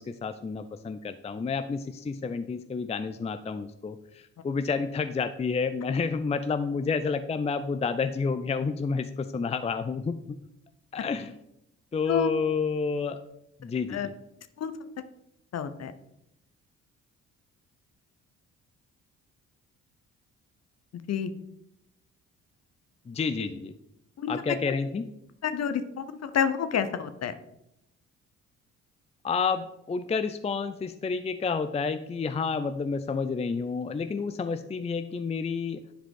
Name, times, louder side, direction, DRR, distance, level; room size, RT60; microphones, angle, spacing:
voice 1, 0.0-10.2 10.9-11.4 11.9-13.2 13.6-14.0 23.1-23.7 24.3-25.1 29.2-35.8, left 5 dB, 20° left, 10 dB, 0.5 m, -30 dB
voice 2, 15.5-15.9 21.1-21.3 24.2-24.6 25.4-27.3, left 8 dB, 50° left, 11 dB, 0.8 m, -29 dB
10.0 x 4.9 x 3.7 m, 0.83 s
hypercardioid pair, 50°, 34 cm